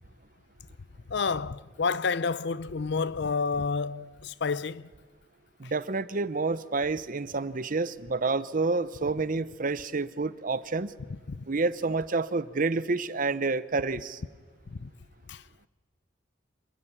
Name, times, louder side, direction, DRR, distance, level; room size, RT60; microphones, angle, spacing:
voice 1, 1.1-4.9 5.6-5.7 11.3-11.4 14.7-14.9 15.3-15.4, left 4 dB, 65° left, 0.6 m, -30 dB
voice 2, 5.6-10.9 11.5-14.2, right 3 dB, 45° right, 0.8 m, -29 dB
27.0 x 14.5 x 9.9 m
head